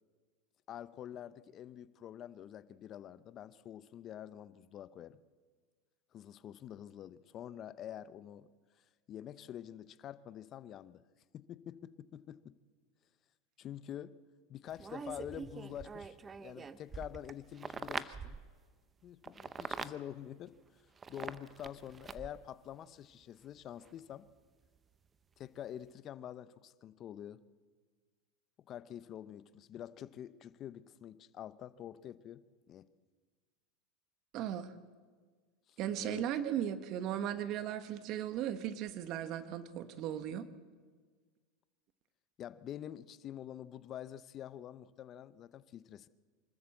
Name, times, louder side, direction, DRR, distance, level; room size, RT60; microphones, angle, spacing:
voice 1, 0.7-5.2 6.1-8.5 9.1-11.0 11.3-12.6 13.6-14.1 14.5-18.4 19.0-20.5 21.1-24.3 25.4-27.4 28.7-32.8 35.7-36.3 42.4-46.1, left 10 dB, 40° left, 15 dB, 0.8 m, -47 dB
sound 1, 14.7-18.5 19.2-19.9 21.0-22.4 23.8-23.9, right 5 dB, 20° right, 0.8 m, -44 dB
voice 2, 34.3-34.7 35.8-40.5, right 10 dB, 50° right, 12 dB, 1.3 m, -37 dB
25.0 x 13.0 x 7.9 m, 1.5 s
supercardioid pair, 125°, 0 cm